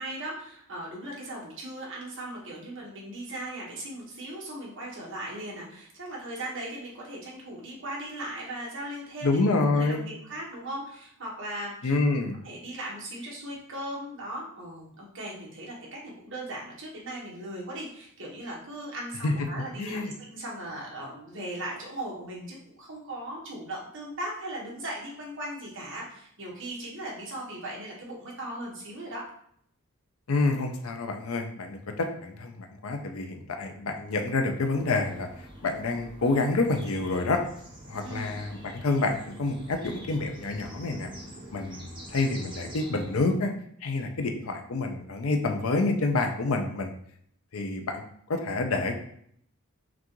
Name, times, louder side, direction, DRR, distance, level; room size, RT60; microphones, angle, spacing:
voice 1, 0.0-11.9 12.4-29.2 38.0-38.4, right 1 dB, 55° right, -4 dB, 1.3 m, -38 dB
voice 2, 9.2-10.0 11.8-12.3 19.2-19.3 19.8-20.1 30.3-35.3 35.6-37.4 37.9-41.1 41.5-43.5 43.8-46.9 47.5-48.0 48.3-49.0, left 3 dB, 65° left, 4 dB, 0.6 m, -28 dB
sound 1, 34.7-43.3, right 1 dB, 20° right, 1.0 m, -45 dB
5.9 x 2.5 x 3.0 m, 0.67 s
head